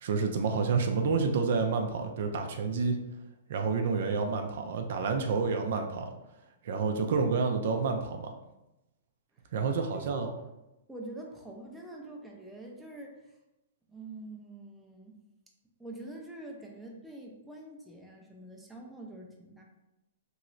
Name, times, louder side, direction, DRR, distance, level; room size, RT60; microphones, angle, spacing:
voice 1, 0.0-3.0 3.5-6.1 6.6-8.3 9.5-10.3, right 4 dB, 65° right, 4 dB, 0.4 m, -29 dB
voice 2, 9.9-10.3 10.9-13.4 13.9-15.2 15.8-19.6, right 2 dB, 5° right, -1 dB, 0.5 m, -45 dB
3.0 x 2.9 x 2.5 m, 0.94 s
hypercardioid pair, 135°, 0 cm